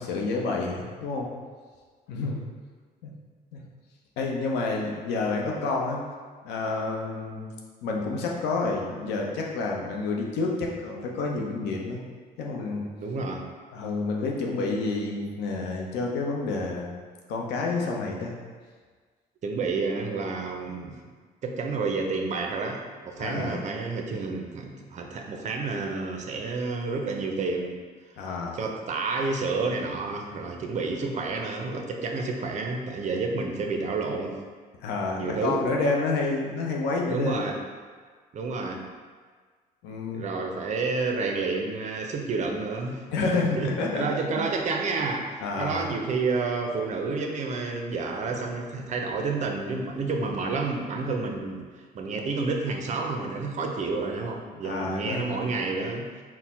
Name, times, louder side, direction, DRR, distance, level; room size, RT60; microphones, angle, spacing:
voice 1, 0.0-1.3 2.1-2.4 3.0-3.1 3.5-3.6 4.2-6.0 6.4-7.5 7.8-12.0 12.4-12.9 13.7-16.9 17.3-18.3 23.2-23.6 28.2-28.6 34.8-37.5 39.8-40.2 43.1-44.1 44.4-44.5 45.4-45.8 54.6-55.3, left 3 dB, 85° left, 0 dB, 0.7 m, -29 dB
voice 2, 13.0-13.5 19.4-21.0 21.4-27.8 28.5-34.4 35.2-35.6 37.1-37.6 38.3-38.8 40.1-43.0 43.3-45.3 45.6-51.6 51.9-56.2, right 3 dB, 45° right, 2 dB, 0.5 m, -30 dB
4.3 x 2.1 x 4.2 m, 1.5 s
cardioid pair, 110°, 17 cm